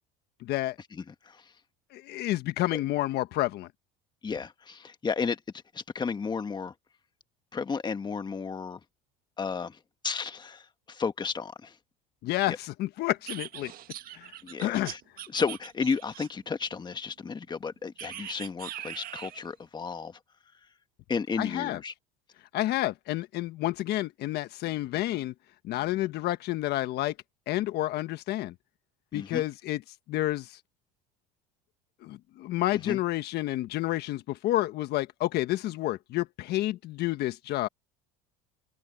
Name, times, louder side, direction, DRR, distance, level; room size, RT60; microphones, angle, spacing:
voice 1, 0.4-0.7 1.9-3.7 12.2-13.7 14.1-14.3 14.6-14.9 21.4-21.8 22.5-25.3 25.6-27.1 27.5-28.5 29.1-29.8 30.1-30.6 32.0-37.7, left 15 dB, 60° left, 1.3 m, -29 dB
voice 2, 4.2-5.4 5.7-6.7 7.5-8.8 9.4-9.8 10.0-11.7 12.5-12.6 14.4-15.0 15.3-20.2 21.1-21.9 29.1-29.4 32.8-33.0, left 5 dB, 25° left, 1.5 m, -33 dB
sound 1, 13.3-16.5 18.0-19.5, right 12 dB, 50° right, 1.6 m, -42 dB
open air
supercardioid pair, 105°, 19 cm